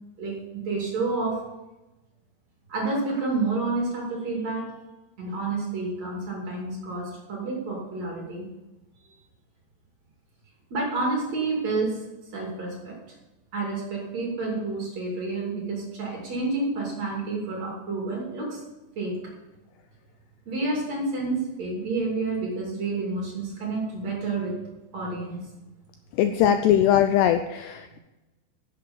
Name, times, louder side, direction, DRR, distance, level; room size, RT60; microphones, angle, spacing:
voice 1, 0.2-1.4 2.7-4.7 5.2-8.5 10.7-12.0 12.3-13.0 13.5-18.6 19.0-19.3 20.5-24.6 24.9-25.5, right 3 dB, 40° right, -2 dB, 3.2 m, -29 dB
voice 2, 26.2-28.0, left 10 dB, 80° left, 8 dB, 2.5 m, -21 dB
11.0 x 8.0 x 7.1 m, 1.0 s
omnidirectional pair, 5.3 m